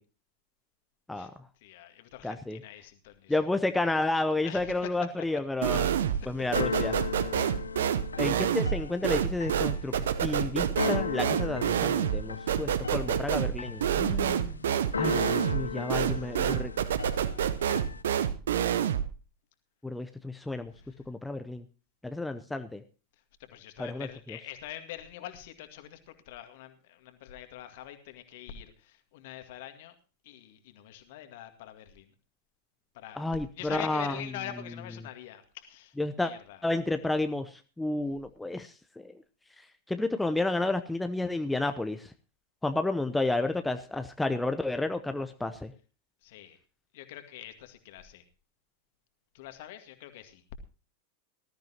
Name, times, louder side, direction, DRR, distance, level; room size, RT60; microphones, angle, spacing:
voice 1, 1.6-3.3 4.4-4.9 5.7-5.8 6.8-7.5 15.9-16.3 23.5-29.9 30.2-32.1 33.0-35.9 36.2-36.6 46.2-46.6 46.9-48.2 49.3-50.4, left 12 dB, 50° left, 8 dB, 2.1 m, -45 dB
voice 2, 2.2-2.6 3.3-6.9 8.2-14.6 15.0-16.7 19.8-20.7 21.1-21.6 22.0-22.8 23.8-24.4 33.1-34.3 36.0-36.3 36.6-39.1 39.9-42.1 42.6-45.7, left 2 dB, 5° left, 8 dB, 0.8 m, -31 dB
sound 1, 5.6-6.3 6.5-19.1, right 9 dB, 60° right, 0.8 m, -28 dB
Keyboard (musical), 5.9-18.0, left 5 dB, 75° left, 0.6 m, -37 dB
19.5 x 13.0 x 2.9 m, 0.34 s
figure-of-eight pair, 90°, 0 cm